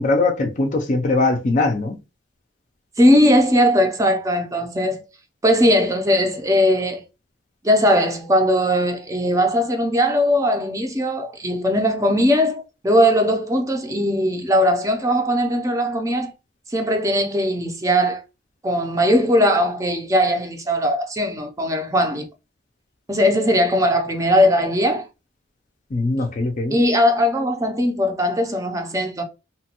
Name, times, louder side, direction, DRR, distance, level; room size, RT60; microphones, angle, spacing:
voice 1, 0.0-2.0 25.9-26.8, left 2 dB, 40° left, 0.4 m, -21 dB
voice 2, 3.0-5.0 5.4-7.0 7.6-16.3 16.7-18.2 18.6-22.3 23.1-25.0 26.7-29.2, equal, 15° right, 0.5 m, -19 dB
2.8 x 2.2 x 2.8 m
head